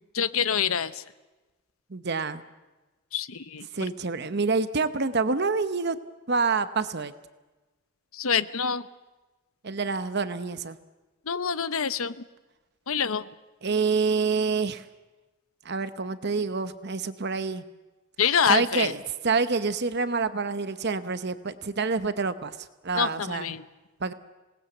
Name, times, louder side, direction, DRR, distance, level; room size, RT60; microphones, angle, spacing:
voice 1, 0.1-1.0 3.1-3.7 8.1-8.9 11.3-12.2 12.9-13.2 18.2-18.9 22.9-23.6, left 7 dB, 75° left, 14 dB, 0.9 m, -26 dB
voice 2, 1.9-2.4 3.7-6.0 6.3-7.1 9.6-10.8 13.6-14.8 15.6-17.6 18.5-19.0 19.2-23.5 24.0-24.1, right 4 dB, 50° right, 12 dB, 0.8 m, -27 dB
26.5 x 19.0 x 7.9 m, 1.2 s
head